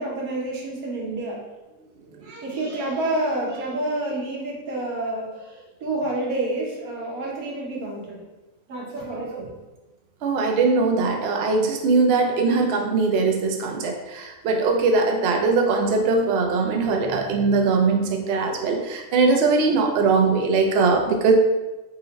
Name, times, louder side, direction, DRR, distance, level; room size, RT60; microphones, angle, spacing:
voice 1, 0.0-1.4 2.2-8.2 8.7-9.5, right 2 dB, 90° right, -3 dB, 1.4 m, -29 dB
voice 2, 9.0-9.4 10.2-21.3, right 4 dB, 65° right, 2 dB, 0.6 m, -21 dB
3.9 x 2.1 x 3.9 m, 1.1 s
omnidirectional pair, 1.5 m